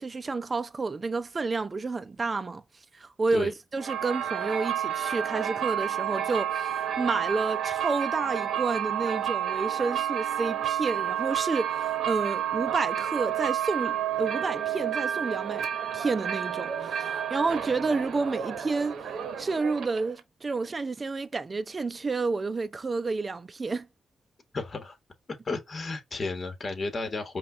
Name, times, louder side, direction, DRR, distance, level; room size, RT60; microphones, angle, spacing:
voice 1, 0.0-15.7 15.9-19.1 19.4-23.9, right 3 dB, 35° right, 0.5 m, -30 dB
sound 1, 3.8-20.2, right 10 dB, 75° right, 0.9 m, -30 dB
voice 2, 24.5-25.0 25.4-27.4, left 3 dB, 45° left, 1.6 m, -32 dB
5.3 x 2.4 x 3.6 m
cardioid pair, 65°, 0 cm